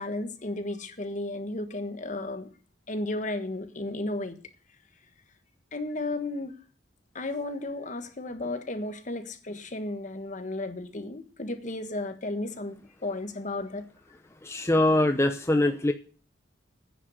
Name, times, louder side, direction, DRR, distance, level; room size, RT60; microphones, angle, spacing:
voice 1, 0.0-2.5 2.9-4.4 5.7-6.5 7.1-13.9, left 2 dB, 45° left, 1.4 m, -34 dB
voice 2, 14.4-15.9, left 1 dB, 15° left, 0.8 m, -23 dB
9.9 x 7.8 x 7.8 m
head